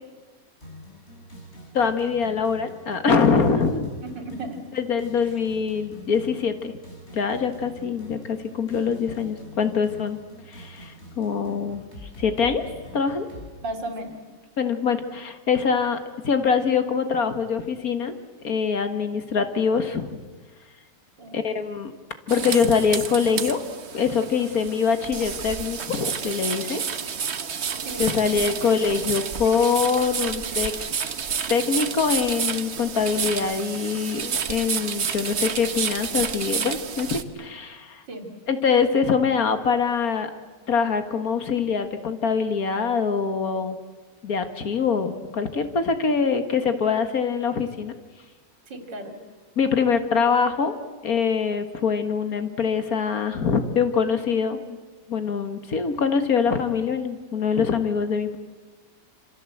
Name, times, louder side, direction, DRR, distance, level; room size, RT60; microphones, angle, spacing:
sound 1, 0.6-13.5, left 1 dB, 35° left, 6.6 m, -44 dB
voice 1, 1.7-3.9 4.7-6.7 7.1-10.2 10.5-11.8 12.2-12.6 12.9-13.3 14.6-18.1 18.4-20.2 21.3-21.9 22.3-23.6 23.9-26.8 28.0-30.7 31.5-38.0 38.5-40.3 40.7-43.8 44.2-47.9 49.6-50.7 51.0-54.8 55.1-58.4, left 6 dB, 55° left, 9 dB, 2.0 m, -24 dB
voice 2, 4.0-4.6 13.6-14.2 21.2-21.5 27.8-28.4 38.1-38.3 48.7-49.1, right 2 dB, 85° right, 6 dB, 3.6 m, -35 dB
sound 2, 22.3-37.2, right 6 dB, 45° right, 1.2 m, -30 dB
27.0 x 26.5 x 7.9 m, 1.4 s
omnidirectional pair, 1.9 m